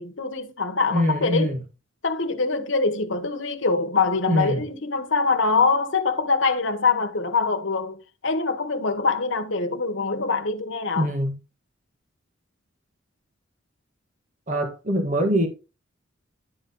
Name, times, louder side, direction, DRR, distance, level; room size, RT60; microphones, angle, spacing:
voice 1, 0.0-1.5 2.0-11.1, left 4 dB, 65° left, 1.2 m, -24 dB
voice 2, 0.9-1.6 4.3-4.6 11.0-11.4 14.5-15.5, equal, 40° right, 1.7 m, -23 dB
11.5 x 3.9 x 3.8 m
head